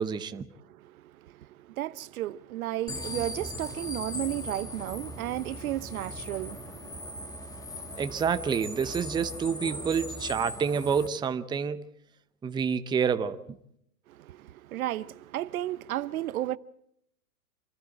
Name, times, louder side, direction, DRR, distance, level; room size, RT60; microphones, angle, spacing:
voice 1, 0.0-0.5 8.0-11.9 12.4-13.6, right 6 dB, 10° right, 0.7 m, -28 dB
voice 2, 0.6-8.0 8.8-8.9 9.6-9.9 14.1-16.6, right 14 dB, 65° right, 0.9 m, -34 dB
sound 1, 2.9-11.1, left 1 dB, 5° left, 1.9 m, -39 dB
27.0 x 13.0 x 8.9 m
hypercardioid pair, 120°, 46 cm